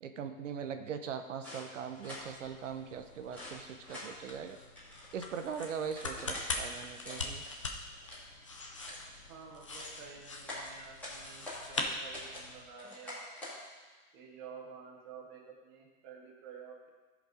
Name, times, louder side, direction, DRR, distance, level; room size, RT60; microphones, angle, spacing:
voice 1, 0.0-4.6 5.1-7.4, right 7 dB, 60° right, 8 dB, 0.8 m, -40 dB
sound 1, 1.4-2.3 3.3-4.1 4.8-6.5 6.9-7.5 7.9-8.3 8.8-9.1 9.5-10.0 10.4-11.6 12.1-12.5 12.8-13.6, left 1 dB, 5° left, 2.0 m, -46 dB
sound 2, 1.9-12.7, left 3 dB, 25° left, 0.4 m, -43 dB
voice 2, 9.3-13.2 13.4-13.5 14.1-16.9, right 6 dB, 15° right, -2 dB, 0.7 m, -51 dB
14.0 x 5.2 x 5.1 m, 1.4 s
hypercardioid pair, 175°, 43 cm